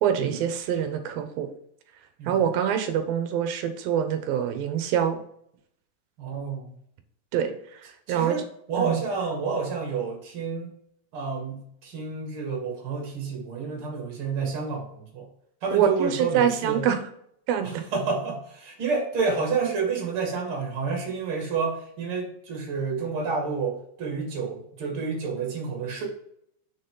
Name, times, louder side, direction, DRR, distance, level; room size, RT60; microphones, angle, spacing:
voice 1, 0.0-1.5 2.2-5.2 7.3-8.4 8.8-9.0 15.7-17.0 17.5-17.9, right 9 dB, 80° right, 7 dB, 2.7 m, -25 dB
voice 2, 6.2-6.7 8.1-8.4 8.7-10.7 11.1-15.3 15.6-16.8 17.9-26.0, right 5 dB, 40° right, 0 dB, 2.7 m, -29 dB
6.7 x 6.1 x 3.9 m, 0.69 s
omnidirectional pair, 4.1 m